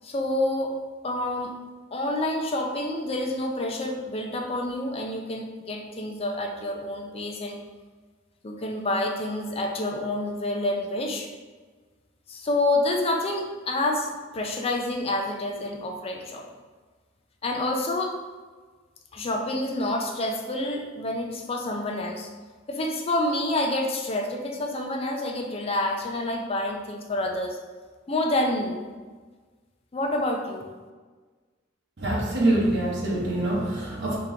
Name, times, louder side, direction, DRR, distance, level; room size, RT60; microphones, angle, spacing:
voice 1, 0.0-0.8 1.0-1.5 1.9-7.6 8.4-11.3 12.3-16.4 17.4-18.1 19.1-22.3 22.7-27.6 28.1-28.8 29.9-30.7, left 1 dB, 30° left, 2 dB, 0.5 m, -28 dB
voice 2, 32.0-34.2, right 1 dB, 60° right, -3 dB, 0.9 m, -24 dB
3.5 x 2.9 x 3.8 m, 1.4 s
head